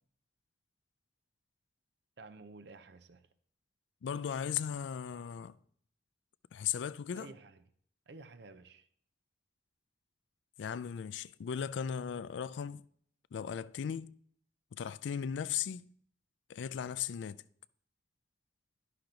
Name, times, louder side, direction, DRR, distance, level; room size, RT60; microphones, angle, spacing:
voice 1, 2.2-3.3 7.1-7.6 8.1-8.9, right 3 dB, 65° right, 0.6 m, -52 dB
voice 2, 4.0-5.6 6.5-7.3 10.6-12.8 13.3-14.1 14.7-15.9 16.5-17.4, left 8 dB, 75° left, 0.3 m, -37 dB
11.5 x 5.9 x 3.8 m
head